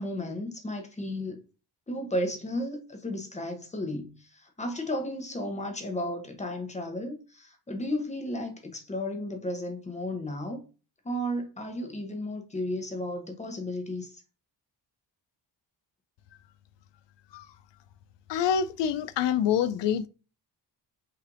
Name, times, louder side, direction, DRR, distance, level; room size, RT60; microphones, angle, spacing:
voice 1, 0.0-1.4 1.9-10.6 11.0-14.1, left 1 dB, 15° left, 0.8 m, -33 dB
voice 2, 18.3-20.1, left 8 dB, 70° left, 0.5 m, -26 dB
5.6 x 3.3 x 2.5 m
wide cardioid pair, 165°, 45 cm